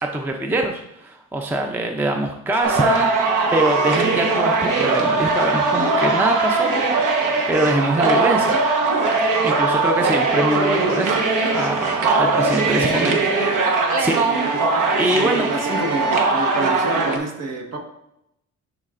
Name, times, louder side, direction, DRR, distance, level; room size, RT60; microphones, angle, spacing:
voice 1, 0.0-7.1 7.5-8.6 9.4-11.3 11.5-13.2 13.6-14.2 14.5-15.8, right 1 dB, 5° right, 3 dB, 0.4 m, -24 dB
sound 1, 2.6-17.2, right 3 dB, 70° right, 1.1 m, -20 dB
voice 2, 12.6-13.2 15.5-17.8, right 3 dB, 50° right, 1 dB, 1.3 m, -28 dB
11.0 x 4.0 x 2.5 m, 0.81 s
cardioid pair, 135°, 32 cm